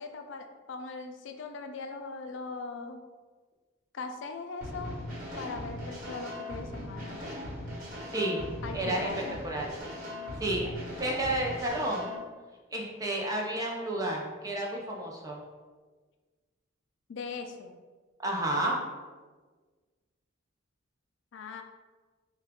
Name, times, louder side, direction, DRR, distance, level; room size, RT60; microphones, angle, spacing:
voice 1, 0.0-3.0 3.9-5.0 5.4-7.2 8.6-9.4 17.1-17.7 21.3-21.6, left 4 dB, 60° left, 5 dB, 0.4 m, -40 dB
sound 1, 4.6-12.2, left 1 dB, 40° right, 1.1 m, -39 dB
voice 2, 8.1-8.4 8.7-9.1 9.4-9.7 10.4-10.7 11.0-12.1 12.7-15.4 18.2-18.8, right 1 dB, 15° right, -1 dB, 0.5 m, -31 dB
3.7 x 2.3 x 3.5 m, 1.4 s
head